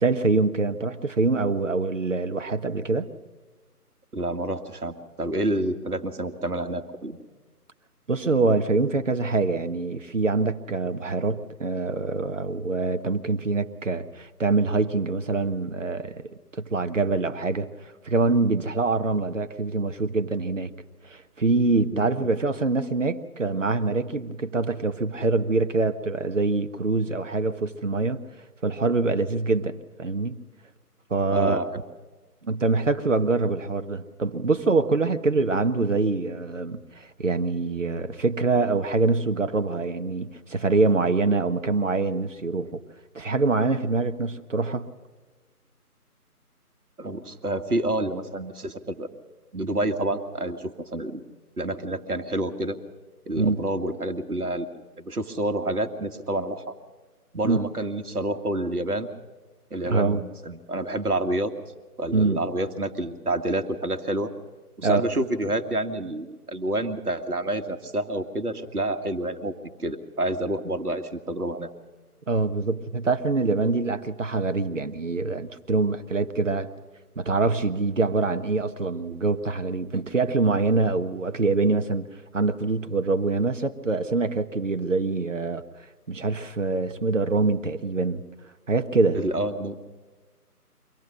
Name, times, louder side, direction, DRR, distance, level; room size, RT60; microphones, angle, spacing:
voice 1, 0.0-3.1 8.1-16.2 16.5-20.7 21.0-28.2 28.6-30.4 31.1-31.6 32.4-42.8 43.1-44.9 53.3-53.6 57.4-57.6 59.8-60.2 62.1-62.4 64.8-65.0 72.3-76.7 77.2-82.1 82.3-88.2 88.7-89.2, right 3 dB, 50° right, 1.3 m, -25 dB
voice 2, 4.1-7.2 21.9-22.1 31.3-31.8 47.0-49.1 49.5-51.2 51.6-52.8 53.3-54.7 55.0-56.7 57.3-59.1 59.7-61.5 62.0-64.3 64.8-69.5 69.8-71.7 89.1-89.8, right 1 dB, 70° right, 1.8 m, -28 dB
24.5 x 17.5 x 6.1 m
figure-of-eight pair, 160°, 46 cm